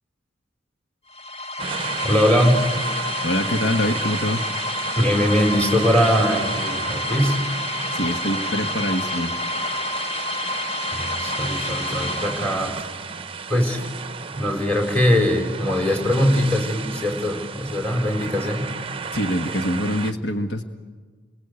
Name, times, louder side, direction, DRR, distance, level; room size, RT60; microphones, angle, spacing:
sound 1, 1.1-13.0, left 2 dB, 35° left, 1.1 m, -29 dB
sound 2, 1.6-20.1, right 5 dB, 30° right, 0.8 m, -33 dB
voice 1, 2.0-2.8 4.9-7.4 10.9-12.7 13.5-13.8 14.3-18.7, equal, 5° left, 2 dB, 5.0 m, -21 dB
voice 2, 3.2-4.4 7.9-9.4 19.1-20.6, left 1 dB, 65° left, 5 dB, 1.6 m, -24 dB
29.0 x 23.5 x 8.4 m, 1.5 s
head